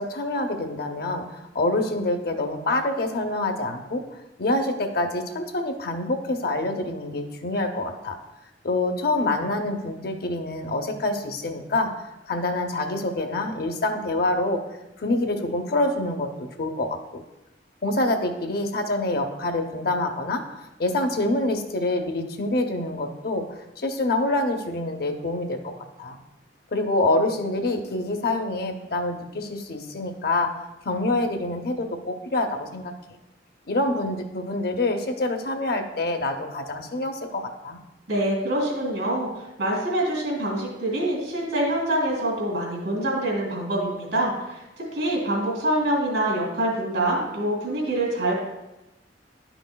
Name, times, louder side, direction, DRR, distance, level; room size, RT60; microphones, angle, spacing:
voice 1, 0.0-4.0 4.4-8.2 8.6-11.9 12.3-14.6 15.0-17.2 17.8-20.4 20.8-25.7 26.0-26.2 26.7-32.9 33.7-37.8, left 2 dB, 60° left, 5 dB, 0.7 m, -26 dB
voice 2, 38.1-39.3 39.6-44.6 44.9-48.3, right 1 dB, 80° right, -3 dB, 2.7 m, -25 dB
11.0 x 6.0 x 2.3 m, 0.97 s
head